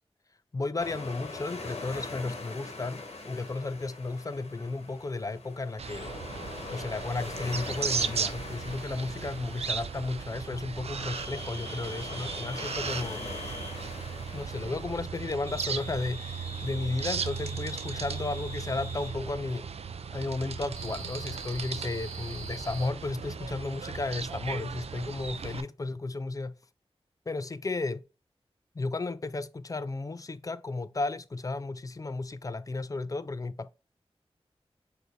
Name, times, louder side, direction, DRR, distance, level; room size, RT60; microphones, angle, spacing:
voice 1, 0.5-6.1 6.7-13.2 14.3-19.7 20.1-26.5 27.3-28.0 28.7-33.7, left 3 dB, 35° left, 0.4 m, -34 dB
sound 1, 0.8-15.1, left 3 dB, 90° left, 1.0 m, -42 dB
sound 2, 5.8-25.6, right 6 dB, 80° right, 0.4 m, -37 dB
sound 3, 11.1-13.8 15.5-19.2 20.7-22.9, right 1 dB, 30° right, 1.3 m, -44 dB
6.0 x 2.7 x 3.2 m
wide cardioid pair, 70°, 11 cm